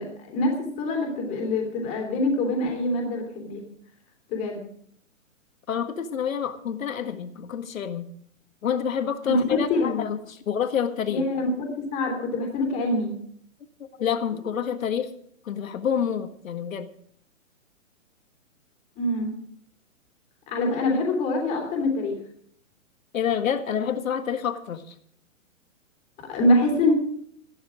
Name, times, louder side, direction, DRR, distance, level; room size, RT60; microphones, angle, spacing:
voice 1, 0.0-3.6 4.3-4.6 9.3-9.9 11.1-13.1 19.0-19.3 20.5-22.2 26.2-26.9, left 1 dB, 20° left, 1 dB, 3.0 m, -25 dB
voice 2, 5.7-8.1 8.6-11.3 14.0-15.1 15.4-16.9 23.1-24.9, left 8 dB, 80° left, 8 dB, 1.7 m, -28 dB
13.5 x 12.5 x 5.0 m, 0.63 s
hypercardioid pair, 170°, 40 cm